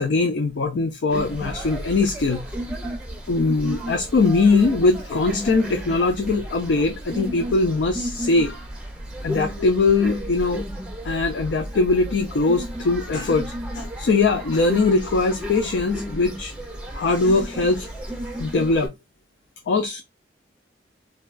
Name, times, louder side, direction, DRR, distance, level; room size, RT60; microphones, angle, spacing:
voice 1, 0.0-2.5 3.3-8.6 9.2-10.6 11.0-16.5 16.9-17.9 18.4-18.9 19.7-20.0, left 3 dB, 75° left, 0.4 m, -21 dB
sound 1, 1.1-18.9, equal, 5° right, 0.6 m, -33 dB
3.3 x 2.2 x 2.3 m
head